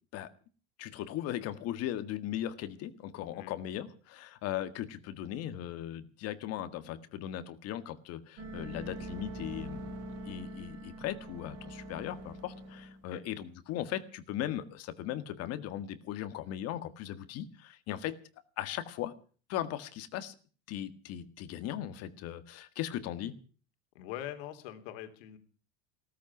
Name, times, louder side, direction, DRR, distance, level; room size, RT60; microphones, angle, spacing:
voice 1, 0.8-9.9 10.2-18.2 18.6-19.1 19.5-20.3 20.7-23.4, left 12 dB, 45° left, 12 dB, 1.7 m, -38 dB
sound 1, 8.4-13.0, right 1 dB, 50° right, 3.8 m, -43 dB
voice 2, 23.9-25.4, left 12 dB, 70° left, 7 dB, 3.2 m, -43 dB
16.5 x 14.5 x 6.0 m, 0.41 s
supercardioid pair, 145°, 33 cm